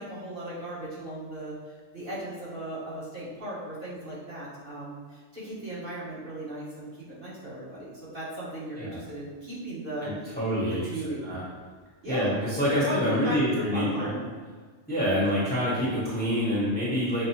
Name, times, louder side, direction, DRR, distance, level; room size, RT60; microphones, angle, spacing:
voice 1, 0.0-10.4 10.7-11.3 12.0-12.3 12.7-14.2, right 1 dB, 45° right, -11 dB, 1.5 m, -37 dB
voice 2, 10.0-10.8 11.2-11.4 12.1-14.1 14.9-17.3, equal, 10° left, -9 dB, 0.9 m, -26 dB
5.9 x 2.1 x 2.8 m, 1.5 s
omnidirectional pair, 1.3 m